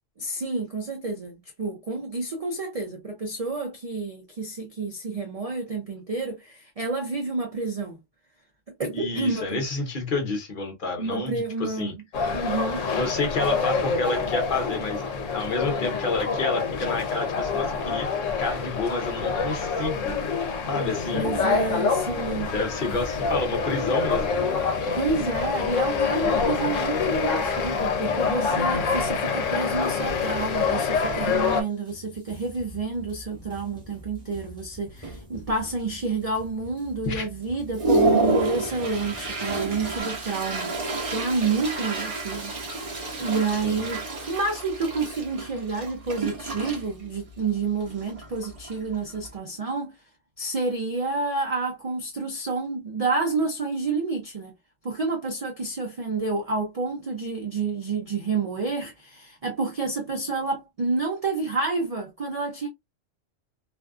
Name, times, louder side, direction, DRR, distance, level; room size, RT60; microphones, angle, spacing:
voice 1, 0.2-8.0 8.8-9.6 11.0-11.9 12.3-12.8 21.1-22.5 24.9-42.5 43.2-49.9 50.4-54.5 54.8-62.7, right 3 dB, 75° right, 0.3 m, -29 dB
voice 2, 8.9-11.9 13.0-15.0 15.3-20.2 20.7-21.3 22.5-24.3 37.1-37.3 43.6-43.8, left 3 dB, 50° left, 0.7 m, -29 dB
sound 1, 12.1-31.6, left 5 dB, 90° left, 1.0 m, -26 dB
sound 2, 21.2-40.0, left 1 dB, 5° left, 0.9 m, -47 dB
Toilet flush, 32.4-32.5 33.0-33.3 33.6-34.1 34.6-34.7 35.0-35.8 36.2-36.3 36.9-37.0 37.4-49.4, right 2 dB, 35° right, 0.7 m, -29 dB
2.5 x 2.4 x 2.3 m
omnidirectional pair, 1.3 m